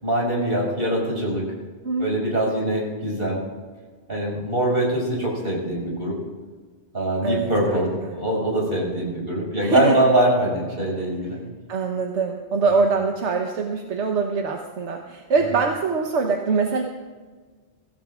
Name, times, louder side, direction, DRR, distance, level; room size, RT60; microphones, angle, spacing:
voice 1, 0.0-1.5 2.0-3.4 4.1-6.2 6.9-11.4 15.5-15.6, right 1 dB, 55° right, -4 dB, 6.0 m, -23 dB
voice 2, 1.8-2.3 7.2-8.1 9.6-10.1 11.7-16.8, right 4 dB, 80° right, 2 dB, 1.3 m, -23 dB
24.0 x 16.0 x 2.5 m, 1.4 s
omnidirectional pair, 1.2 m